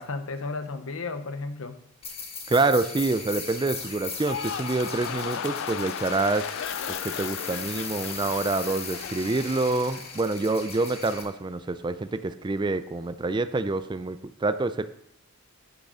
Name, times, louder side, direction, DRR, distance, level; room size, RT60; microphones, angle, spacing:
voice 1, 0.0-1.8, left 3 dB, 85° left, 9 dB, 0.8 m, -33 dB
sound 1, 2.0-11.2, left 4 dB, 30° left, 1.4 m, -38 dB
voice 2, 2.5-6.6 6.9-14.9, right 3 dB, 20° right, 12 dB, 0.4 m, -27 dB
sound 2, 4.1-10.4 10.7-11.2, left 8 dB, 60° left, 0.3 m, -36 dB
9.9 x 6.5 x 4.9 m, 0.72 s
head